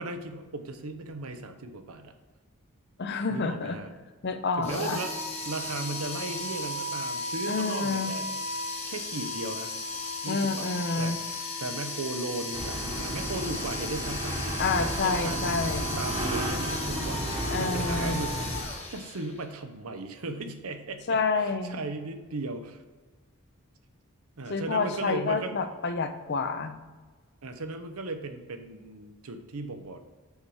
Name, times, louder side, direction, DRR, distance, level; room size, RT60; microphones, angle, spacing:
voice 1, 0.0-2.1 3.3-3.9 4.6-5.2 5.4-9.7 10.2-11.3 11.6-14.5 14.8-15.6 16.0-17.3 17.6-18.6 18.9-22.8 24.4-25.5 27.4-30.0, right 2 dB, 85° right, 8 dB, 0.8 m, -37 dB
voice 2, 3.0-3.8 4.2-5.0 7.5-8.2 10.3-11.2 14.6-16.0 17.5-18.2 21.1-21.8 24.5-26.7, left 4 dB, 50° left, 8 dB, 0.6 m, -29 dB
sound 1, 4.6-19.5, left 2 dB, 30° left, 1.1 m, -35 dB
sound 2, 12.5-18.6, right 1 dB, 30° right, 1.1 m, -33 dB
6.4 x 4.8 x 4.8 m, 1.4 s
head